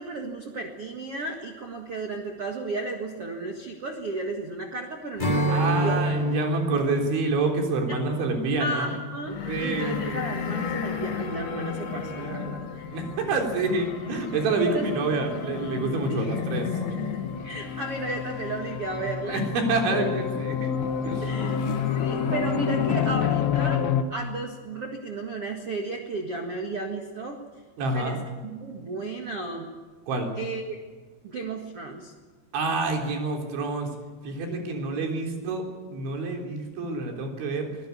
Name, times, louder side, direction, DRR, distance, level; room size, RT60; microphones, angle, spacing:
voice 1, 0.0-6.0 7.9-8.0 8.6-12.8 14.7-14.9 16.1-16.4 17.4-19.4 21.2-21.6 21.9-23.9 24.1-27.4 27.9-29.7 30.4-30.8 31.2-32.1 34.5-34.9 35.2-35.3, right 3 dB, 50° right, 2 dB, 1.9 m, -34 dB
Strum, 5.2-10.6, right 1 dB, 15° left, 2.5 m, -29 dB
voice 2, 5.5-8.9 9.5-10.2 12.9-16.7 19.3-20.7 21.0-21.6 27.8-28.2 30.1-30.3 32.5-33.9 34.2-37.7, right 3 dB, 85° right, 2 dB, 6.0 m, -28 dB
sound 1, 9.2-23.8, left 7 dB, 60° left, 3.7 m, -35 dB
sound 2, 9.8-24.0, left 7 dB, 80° left, 3.3 m, -31 dB
25.0 x 16.5 x 8.5 m, 1.4 s
omnidirectional pair, 5.2 m